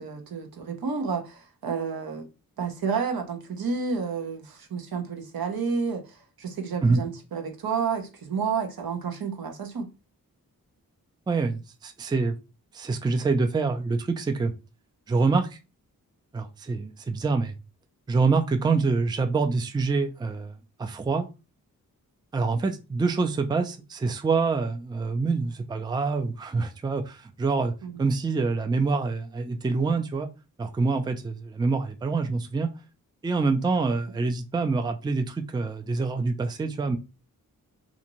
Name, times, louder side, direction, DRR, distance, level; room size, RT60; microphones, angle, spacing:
voice 1, 0.0-2.3 2.6-9.9 27.8-27.9, right 5 dB, 80° right, 0.8 m, -30 dB
voice 2, 11.3-12.4 12.7-14.5 15.1-15.6 16.3-17.5 18.1-20.5 20.8-21.3 22.3-27.7 28.0-30.3 30.6-32.7 33.2-37.0, right 4 dB, 15° right, 0.4 m, -26 dB
2.5 x 2.5 x 2.9 m
cardioid pair, 60°, 36 cm